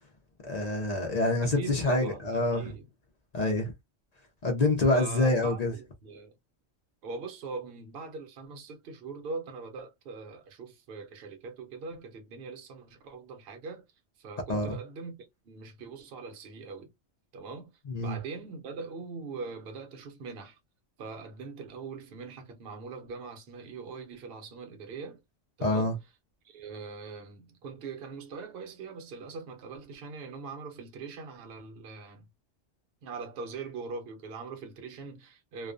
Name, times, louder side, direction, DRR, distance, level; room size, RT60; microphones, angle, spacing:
voice 1, 0.4-2.7 3.3-3.7 4.4-5.7 14.5-14.7 17.9-18.2 25.6-25.9, left 2 dB, 55° left, 0.4 m, -26 dB
voice 2, 1.4-2.9 4.9-6.3 7.0-13.9 14.2-16.9 17.3-17.7 18.0-20.6 21.0-25.2 25.6-26.0 26.4-32.3 33.0-35.7, right 4 dB, 55° right, 0.8 m, -42 dB
2.3 x 2.2 x 2.4 m
omnidirectional pair, 1.3 m